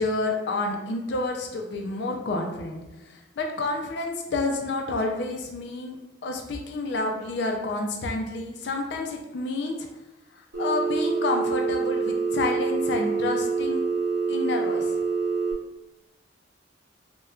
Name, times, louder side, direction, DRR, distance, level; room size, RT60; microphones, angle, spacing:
voice 1, 0.0-6.0 6.2-9.9 10.6-13.8 14.3-14.9, left 2 dB, 65° left, 2 dB, 0.4 m, -29 dB
Telephone, 10.5-15.5, right 4 dB, 75° right, 0.8 m, -26 dB
4.2 x 2.2 x 2.3 m, 0.99 s
head